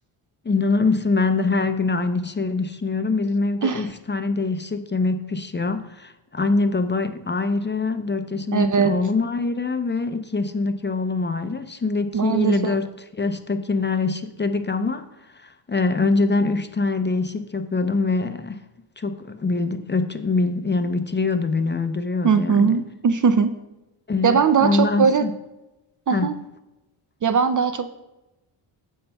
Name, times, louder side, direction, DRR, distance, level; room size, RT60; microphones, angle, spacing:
voice 1, 0.4-18.6 19.0-22.8 24.1-25.3 26.1-26.4, left 3 dB, 25° left, 0.6 m, -24 dB
voice 2, 8.5-8.9 12.1-12.8 22.2-23.5 24.2-25.2 26.1-26.3 27.2-27.9, right 6 dB, 40° right, 0.5 m, -20 dB
15.5 x 5.5 x 2.3 m
cardioid pair, 65°, 49 cm